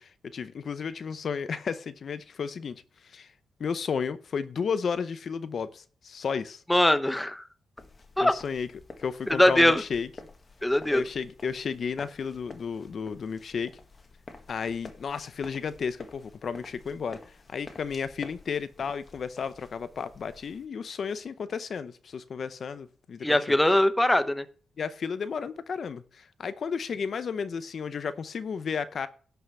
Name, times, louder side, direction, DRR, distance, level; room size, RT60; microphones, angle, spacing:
voice 1, 0.0-3.3 3.6-6.6 8.2-8.7 9.0-10.1 10.9-13.7 14.5-23.4 24.8-29.1, left 6 dB, 55° left, 0.7 m, -33 dB
voice 2, 6.7-7.5 8.2-8.3 9.3-9.8 10.6-11.1 23.2-24.5, left 1 dB, 10° left, 0.8 m, -21 dB
sound 1, 7.8-20.7, left 3 dB, 30° left, 1.7 m, -49 dB
11.5 x 5.7 x 6.9 m
cardioid pair, 120°, 0 cm